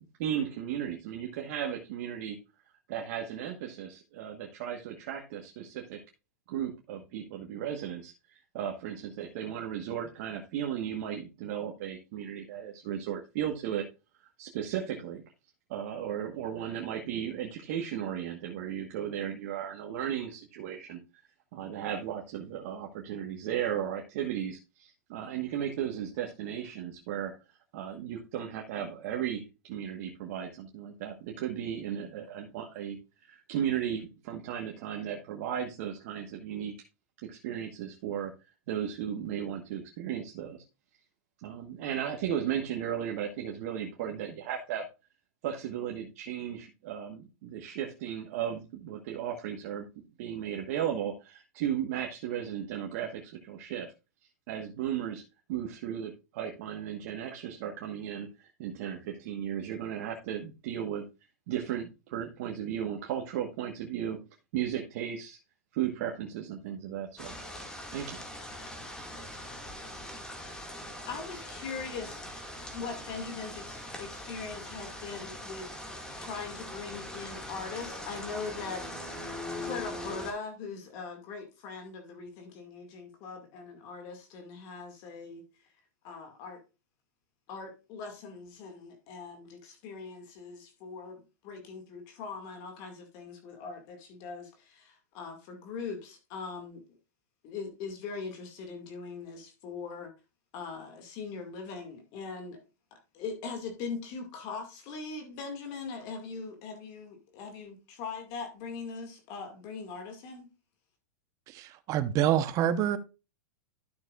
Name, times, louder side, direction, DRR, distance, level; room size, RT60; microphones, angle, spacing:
voice 1, 0.2-2.4 2.9-6.0 6.5-13.9 14.2-15.2 15.7-21.0 21.5-33.0 33.3-36.7 37.2-38.3 38.7-40.6 41.4-44.8 45.4-49.9 50.2-53.9 54.5-55.2 55.5-61.0 61.5-64.2 64.5-65.4 65.7-67.3 67.9-68.2, right 9 dB, 55° right, 1.4 m, -35 dB
sound 1, 67.2-80.3, left 1 dB, 10° left, 2.1 m, -41 dB
voice 2, 71.1-72.3 72.7-75.7 76.2-79.1 79.6-85.7 86.0-86.6 87.5-96.8 97.4-100.1 100.5-102.6 103.1-110.5, left 5 dB, 45° left, 2.1 m, -41 dB
voice 3, 111.5-113.0, right 10 dB, 35° right, 0.9 m, -27 dB
12.0 x 6.5 x 2.4 m
hypercardioid pair, 130°, 9 cm